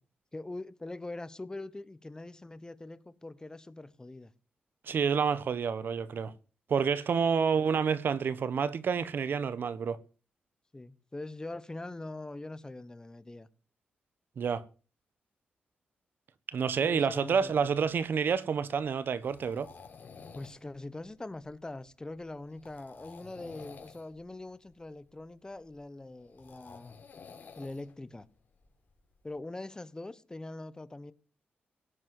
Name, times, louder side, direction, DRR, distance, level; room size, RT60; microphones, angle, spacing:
voice 1, 0.3-4.3 10.7-13.5 16.8-17.6 20.3-27.1 27.6-28.3 29.2-31.1, left 2 dB, 20° left, 1.2 m, -43 dB
voice 2, 4.8-6.3 6.7-10.0 14.4-14.6 16.5-19.7, right 6 dB, 65° right, 1.2 m, -29 dB
sound 1, 17.2-29.4, left 5 dB, 55° left, 3.9 m, -53 dB
17.5 x 7.7 x 7.8 m
cardioid pair, 80°, 4 cm